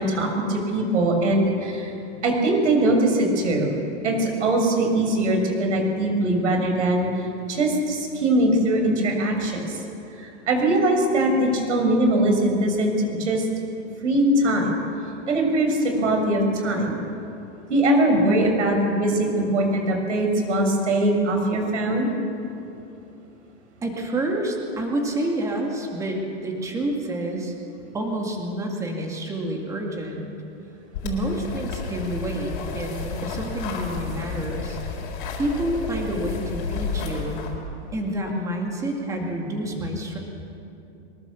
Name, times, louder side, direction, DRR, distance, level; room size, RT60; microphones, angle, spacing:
voice 1, 0.0-1.9 2.2-3.7 4.0-9.8 10.2-13.5 14.0-14.8 15.3-17.0 17.7-22.1, right 1 dB, 85° right, 3 dB, 6.3 m, -21 dB
voice 2, 23.8-27.5 27.9-30.3 31.0-34.8 35.4-37.4 37.9-40.2, right 1 dB, 10° right, 1 dB, 2.1 m, -28 dB
sound 1, 30.9-37.6, left 5 dB, 45° left, 4.2 m, -32 dB
23.0 x 21.0 x 7.1 m, 2.8 s
supercardioid pair, 170°, 35 cm